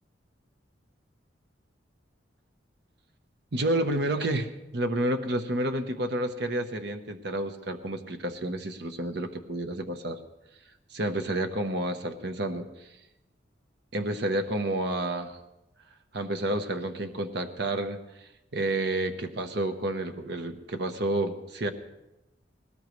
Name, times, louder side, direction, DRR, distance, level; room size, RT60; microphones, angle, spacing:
voice 1, 3.5-10.2 10.9-12.9 13.9-15.4 16.1-18.0 18.5-21.7, right 1 dB, 65° right, 7 dB, 1.0 m, -30 dB
20.0 x 18.5 x 3.2 m, 0.95 s
head